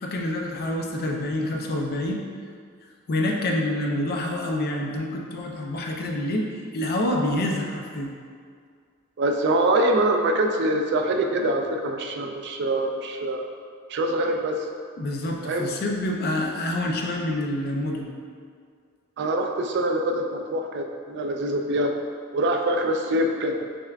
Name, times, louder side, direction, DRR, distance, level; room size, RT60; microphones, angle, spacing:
voice 1, 0.0-2.2 3.1-8.1 15.0-18.1, left 1 dB, 50° left, 1 dB, 0.4 m, -27 dB
voice 2, 9.2-13.4 13.9-14.6 15.4-15.7 19.2-21.9 22.3-23.7, right 1 dB, 55° right, 3 dB, 0.3 m, -24 dB
6.1 x 2.2 x 2.4 m, 2.1 s
head